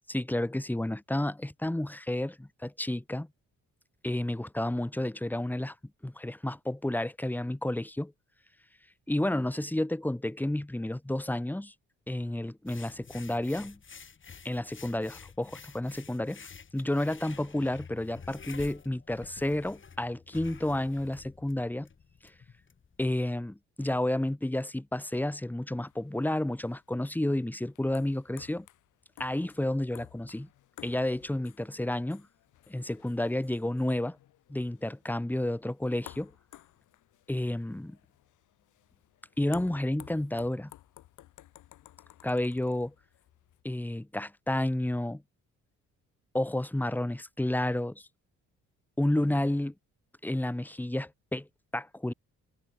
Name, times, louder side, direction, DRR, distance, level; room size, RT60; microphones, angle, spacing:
voice 1, 0.1-3.3 4.0-5.7 6.0-8.1 9.1-11.7 12.1-13.8 14.4-16.4 16.7-21.9 23.0-28.7 29.2-30.5 30.8-32.3 32.7-34.2 34.5-36.3 37.3-38.0 39.4-40.7 42.2-42.9 43.6-45.2 46.3-48.1 49.0-49.7 50.2-51.5 51.7-52.1, left 1 dB, 5° left, 2.0 m, -31 dB
sound 1, 12.7-23.2, left 6 dB, 40° left, 7.9 m, -50 dB
sound 2, 25.9-43.6, left 14 dB, 80° left, 2.6 m, -55 dB
cardioid pair, 90°, 30 cm